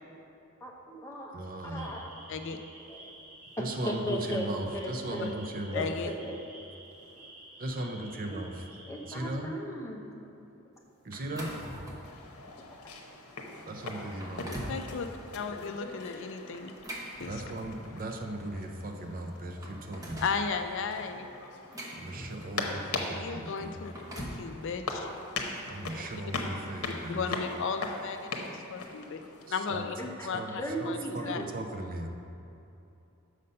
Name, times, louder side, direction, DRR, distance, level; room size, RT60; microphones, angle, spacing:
voice 1, 0.6-1.3 1.6-2.2 2.9-3.1 3.6-4.5 4.7-5.3 5.7-6.4 7.8-7.9 8.3-8.4 8.8-10.1 30.0-31.5, equal, 15° left, -1 dB, 0.8 m, -37 dB
voice 2, 1.3-1.9 3.6-5.9 7.6-8.6 9.1-9.5 11.0-11.5 13.7-14.8 17.3-20.2 21.9-23.8 25.7-27.2 29.5-29.8 30.3-32.1, right 1 dB, 40° right, 4 dB, 0.6 m, -37 dB
sound 1, 1.7-9.2, right 2 dB, 80° right, 1.7 m, -51 dB
voice 3, 5.7-6.1 14.7-15.1 15.3-16.7 17.1-17.4 20.2-21.3 23.1-25.1 26.9-29.2 29.5-30.0 30.2-30.4 30.9-31.0 31.3-31.4, left 5 dB, 60° left, 7 dB, 0.4 m, -35 dB
sound 2, 11.1-12.2 12.7-12.9 13.5-13.6 14.0-14.8 16.5-17.9 18.9-19.0 19.3-20.4 21.2-22.7 23.7-24.5, equal, 15° right, 0.9 m, -42 dB
sound 3, 12.0-29.5, left 3 dB, 90° left, 0.8 m, -40 dB
6.5 x 5.4 x 5.4 m, 2.8 s
head